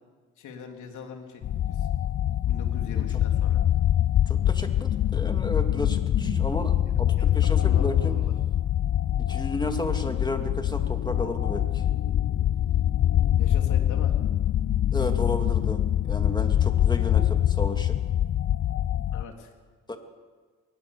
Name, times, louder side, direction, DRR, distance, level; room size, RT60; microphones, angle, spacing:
voice 1, 0.4-1.4 1.7-1.9 2.5-3.6 7.2-8.3 13.4-14.2 19.1-19.5, left 6 dB, 75° left, 3 dB, 3.4 m, -41 dB
sound 1, 1.4-19.2, left 11 dB, 50° left, 0.6 m, -24 dB
sound 2, 2.7-8.2, right 2 dB, 15° right, 1.2 m, -45 dB
voice 2, 4.3-8.1 9.3-11.8 14.9-18.0 19.9-20.0, left 1 dB, 15° left, 5 dB, 2.6 m, -33 dB
21.5 x 20.0 x 7.1 m, 1.5 s
cardioid pair, 90°, 30 cm